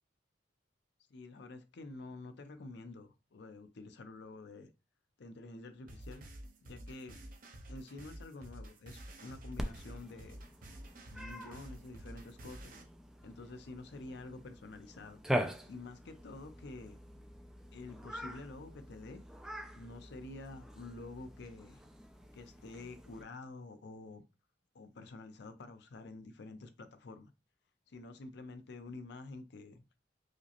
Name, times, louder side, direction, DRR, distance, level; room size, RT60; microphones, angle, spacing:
voice 1, 1.1-4.7 5.2-6.2 6.6-7.2 7.7-10.4 11.1-12.8 13.2-15.2 15.7-17.0 17.7-19.2 19.8-21.8 22.3-24.2 24.7-27.3 27.9-29.8, left 2 dB, 60° left, 0.5 m, -49 dB
sound 1, 5.9-12.8, right 1 dB, 50° right, 0.7 m, -50 dB
Cat, 9.6-23.2, equal, 5° right, 0.4 m, -43 dB
4.9 x 2.0 x 2.8 m
head